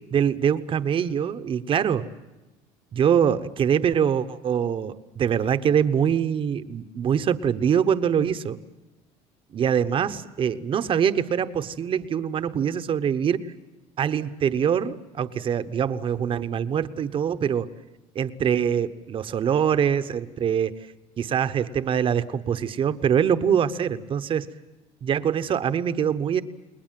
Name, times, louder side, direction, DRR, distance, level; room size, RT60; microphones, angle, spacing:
voice 1, 0.1-2.1 2.9-8.6 9.5-13.5 14.0-17.7 18.1-20.7 21.2-24.5 25.0-26.4, right 8 dB, 40° right, 11 dB, 1.1 m, -24 dB
29.5 x 20.5 x 7.6 m, 1.1 s
cardioid pair, 125°, 14 cm